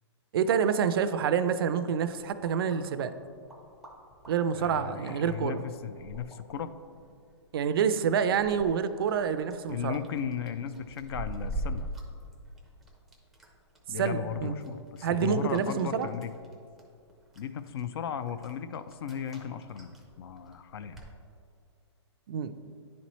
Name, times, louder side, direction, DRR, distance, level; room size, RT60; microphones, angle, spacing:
voice 1, 0.3-3.1 4.3-5.6 7.5-10.0 14.0-14.6 15.0-16.1 22.3-22.5, right 7 dB, 55° right, 11 dB, 0.4 m, -27 dB
sound 1, 2.0-21.1, right 1 dB, ahead, 0.5 m, -45 dB
voice 2, 4.5-6.7 9.7-11.9 13.9-16.3 17.4-21.0, left 8 dB, 55° left, 12 dB, 0.4 m, -36 dB
10.5 x 4.2 x 3.0 m, 2.4 s
hypercardioid pair, 155°, 15 cm